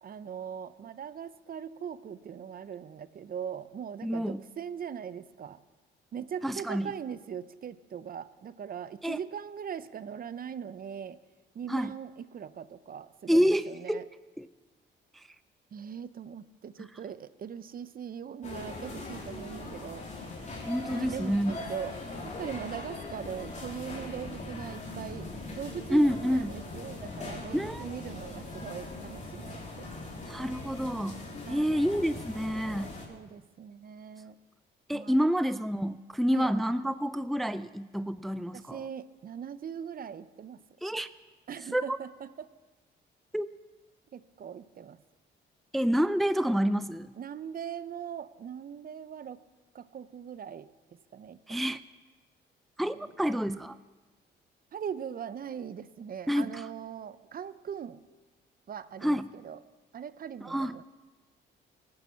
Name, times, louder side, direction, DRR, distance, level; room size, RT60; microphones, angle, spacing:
voice 1, 0.0-5.6 6.1-11.2 11.5-14.0 15.7-20.0 20.9-21.9 22.2-29.9 31.4-31.8 33.1-34.3 34.9-35.2 36.3-36.5 38.5-40.6 41.5-42.5 44.1-45.0 47.2-49.4 49.7-50.7 51.1-51.6 52.8-53.1 54.7-58.0 58.7-59.6 59.9-60.8, right 8 dB, 45° right, 15 dB, 0.7 m, -40 dB
voice 2, 4.0-4.4 6.4-6.9 9.0-9.2 11.7-11.9 13.3-14.1 14.4-14.5 15.1-15.3 20.6-21.6 25.9-26.5 27.5-27.9 30.3-31.2 31.5-32.9 34.9-38.8 40.8-41.1 41.7-42.0 43.3-43.5 45.7-47.1 51.5-51.8 52.8-53.8 56.3-56.7 59.0-59.3 60.4-60.7, equal, ahead, 13 dB, 0.4 m, -28 dB
sound 1, 18.4-33.1, left 2 dB, 35° left, 3.6 m, -41 dB
19.0 x 9.6 x 7.1 m, 1.3 s
cardioid pair, 90°, 20 cm